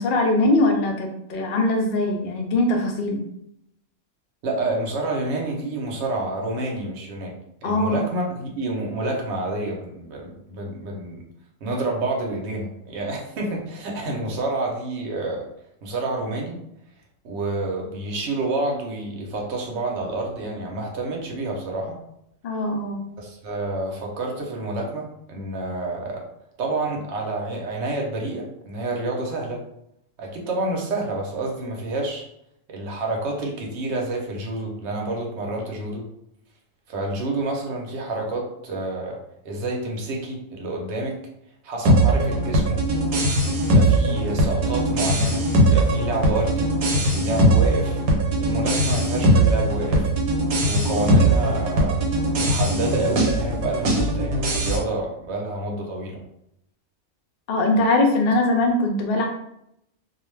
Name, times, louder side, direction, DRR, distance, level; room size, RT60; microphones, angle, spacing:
voice 1, 0.0-3.2 7.6-8.0 22.4-23.0 57.5-59.3, left 2 dB, 65° left, 1 dB, 0.5 m, -21 dB
voice 2, 4.4-7.3 7.6-11.2 11.6-15.5 15.8-16.6 17.2-22.0 23.2-26.2 26.6-29.6 30.2-32.2 32.7-36.0 36.9-41.2 41.6-42.8 43.6-48.0 48.4-50.1 50.6-52.0 52.4-56.2, right 2 dB, 60° right, 0 dB, 0.9 m, -28 dB
sound 1, 41.8-54.8, right 1 dB, 85° right, 1.2 m, -20 dB
2.4 x 2.3 x 3.1 m, 0.78 s
omnidirectional pair, 1.5 m